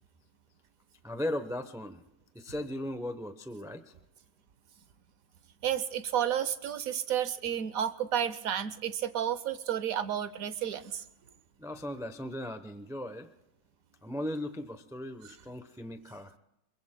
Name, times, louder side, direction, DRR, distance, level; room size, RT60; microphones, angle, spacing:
voice 1, 1.0-2.0 2.3-3.9 11.6-13.3 14.0-16.4, left 1 dB, 5° right, 9 dB, 0.4 m, -37 dB
voice 2, 5.6-11.0, right 9 dB, 70° right, 13 dB, 1.2 m, -31 dB
26.5 x 22.0 x 2.2 m, 0.90 s
omnidirectional pair, 1.6 m